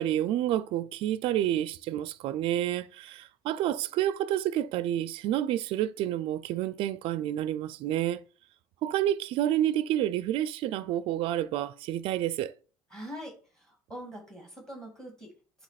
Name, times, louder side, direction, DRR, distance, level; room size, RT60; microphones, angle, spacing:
voice 1, 0.0-8.2 8.8-12.5, right 12 dB, 60° right, 0.4 m, -29 dB
voice 2, 12.9-15.3, equal, 5° left, 2.1 m, -43 dB
8.4 x 3.0 x 4.1 m
cardioid pair, 150°, 10 cm